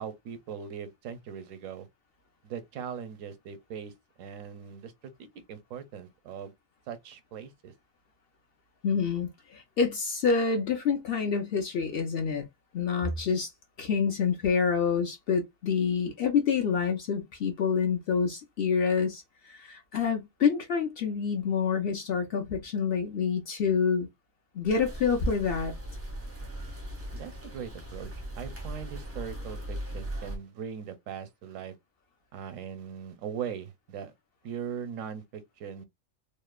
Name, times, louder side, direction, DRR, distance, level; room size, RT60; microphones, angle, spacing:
voice 1, 0.0-1.9 2.4-3.9 4.2-6.5 6.9-7.7 27.1-31.8 32.3-34.1 34.4-35.8, right 7 dB, 85° right, 1.0 m, -40 dB
voice 2, 8.8-12.5 12.7-13.5 13.8-24.1 24.5-25.7, left 6 dB, 60° left, 0.6 m, -27 dB
sound 1, 24.7-30.4, right 1 dB, 20° right, 0.4 m, -39 dB
2.9 x 2.0 x 2.2 m
omnidirectional pair, 1.3 m